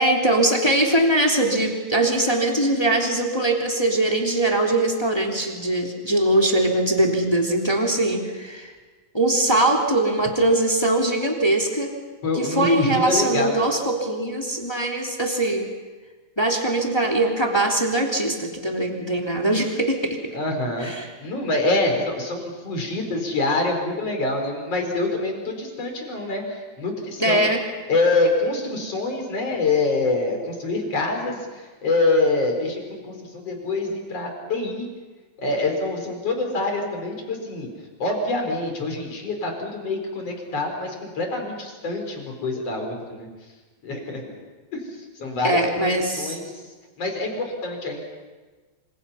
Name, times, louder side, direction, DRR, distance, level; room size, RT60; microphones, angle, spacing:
voice 1, 0.0-8.7 9.1-11.9 12.3-15.7 16.4-20.2 20.8-21.1 27.2-27.6 45.4-46.4, right 1 dB, 10° left, 0 dB, 2.1 m, -21 dB
voice 2, 12.2-13.6 20.3-20.9 21.2-27.5 27.9-34.9 35.4-37.7 38.0-43.3 43.8-44.4 44.7-44.8 45.2-46.6 47.0-48.0, left 2 dB, 35° left, 3 dB, 5.3 m, -25 dB
27.5 x 26.5 x 5.7 m, 1.3 s
omnidirectional pair, 4.8 m